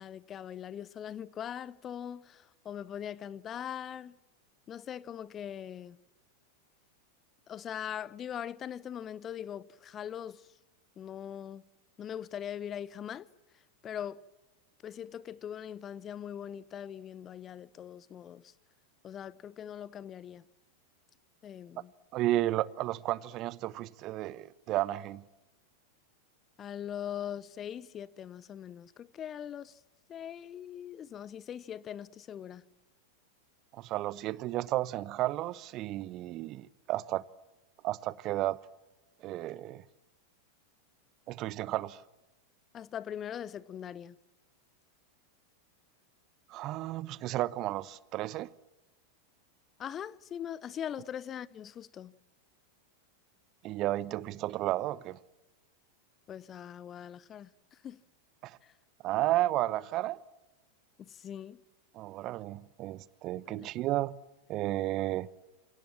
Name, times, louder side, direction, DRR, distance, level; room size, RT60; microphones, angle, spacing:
voice 1, 0.0-4.2 4.7-6.0 7.5-10.5 11.0-11.6 12.0-13.3 13.8-14.2 14.8-18.5 19.0-20.4 21.4-21.9 26.6-29.8 30.1-32.6 42.7-44.2 49.8-52.1 56.3-58.0 58.6-58.7 61.0-61.6 63.5-63.7, left 9 dB, 25° left, 0.8 m, -41 dB
voice 2, 22.1-25.2 33.8-37.2 37.8-38.6 39.2-39.8 41.3-42.0 46.5-48.5 53.6-55.2 58.4-58.5 59.0-60.2 62.0-64.2 64.5-65.3, right 15 dB, 35° right, 0.9 m, -32 dB
28.5 x 26.5 x 7.5 m
figure-of-eight pair, 90°, 0 cm